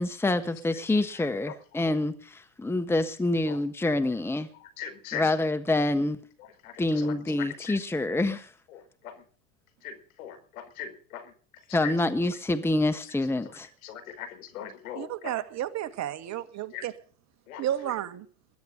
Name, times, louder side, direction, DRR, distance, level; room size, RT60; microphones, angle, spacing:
voice 1, 0.0-4.5 5.1-6.2 6.8-8.5 11.7-13.7, left 2 dB, 5° left, 1.4 m, -27 dB
voice 2, 0.9-1.9 3.5-3.9 4.5-5.4 6.4-7.9 8.7-9.2 9.8-12.1 13.0-13.1 13.4-15.4 16.7-16.9 17.5-18.0, left 8 dB, 75° left, 5.0 m, -41 dB
voice 3, 15.0-16.9 17.6-18.3, right 12 dB, 40° right, 1.9 m, -32 dB
21.0 x 10.5 x 5.3 m
hypercardioid pair, 100°, 43 cm